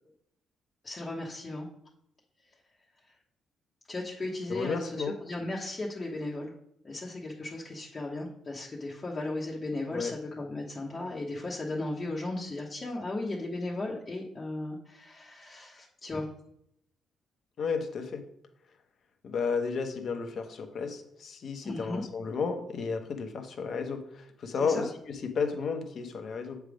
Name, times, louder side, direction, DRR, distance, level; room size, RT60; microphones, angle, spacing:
voice 1, 0.8-1.7 3.9-6.5 6.8-16.3 21.6-22.0 24.6-24.8, left 2 dB, 30° left, -4 dB, 1.1 m, -36 dB
voice 2, 4.5-5.1 9.9-10.1 17.6-18.2 19.2-26.6, left 5 dB, 55° left, 5 dB, 1.0 m, -33 dB
7.3 x 3.5 x 5.0 m, 0.74 s
cardioid pair, 90°, 0 cm